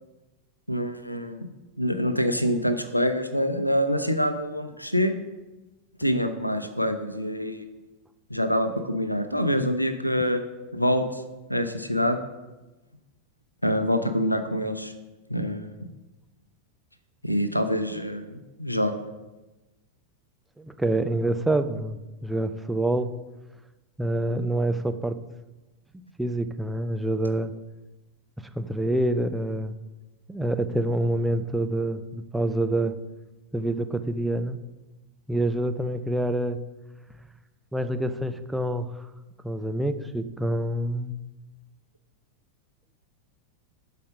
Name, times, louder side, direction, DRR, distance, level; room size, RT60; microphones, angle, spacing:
voice 1, 0.7-1.5 1.8-5.1 6.0-7.6 8.3-10.4 10.7-11.0 11.5-12.2 13.6-14.9 15.3-15.9 17.2-18.9, equal, 90° left, 9 dB, 0.7 m, -25 dB
voice 2, 20.6-23.1 24.0-25.2 26.2-27.5 28.4-29.7 30.3-32.9 33.5-34.6 35.3-36.6 37.7-38.9 39.4-41.2, right 1 dB, 5° right, 8 dB, 0.5 m, -26 dB
12.0 x 5.1 x 5.0 m, 1.1 s
figure-of-eight pair, 90°, 0 cm